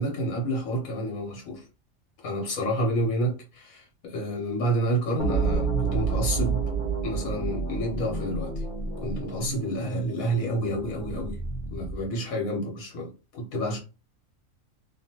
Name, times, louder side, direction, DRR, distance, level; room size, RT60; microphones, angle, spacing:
voice 1, 0.0-1.6 2.2-6.6 7.0-8.6 9.0-11.4 11.7-13.8, right 1 dB, 75° left, 1.4 m, -29 dB
sound 1, 5.2-12.1, right 4 dB, 40° left, 1.0 m, -29 dB
2.8 x 2.5 x 2.8 m
omnidirectional pair, 1.5 m